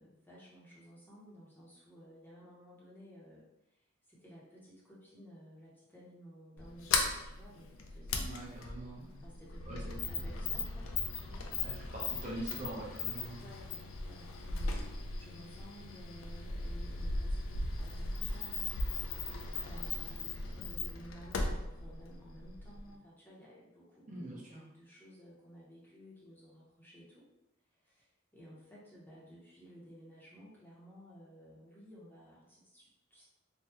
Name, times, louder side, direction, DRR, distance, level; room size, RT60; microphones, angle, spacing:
voice 1, 0.0-3.8 4.1-8.7 9.2-11.7 13.2-18.8 19.6-27.3 27.7-33.3, equal, 10° left, -7 dB, 0.8 m, -55 dB
Sliding door, 6.6-22.9, left 3 dB, 80° left, 0.4 m, -38 dB
voice 2, 8.1-9.2 9.7-10.1 11.6-13.5 24.1-24.6, right 1 dB, 40° right, -5 dB, 0.7 m, -44 dB
3.4 x 2.2 x 2.9 m, 0.90 s
head